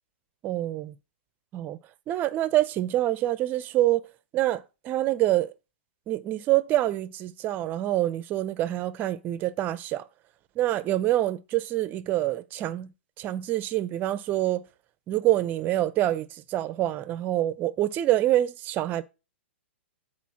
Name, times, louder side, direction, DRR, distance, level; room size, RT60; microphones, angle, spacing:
voice 1, 0.4-0.9 1.5-1.8 2.1-4.1 4.3-5.5 6.1-10.0 10.6-12.9 13.2-14.6 15.1-19.0, right 14 dB, 30° right, 0.7 m, -26 dB
8.5 x 4.5 x 5.8 m
hypercardioid pair, 130°, 7 cm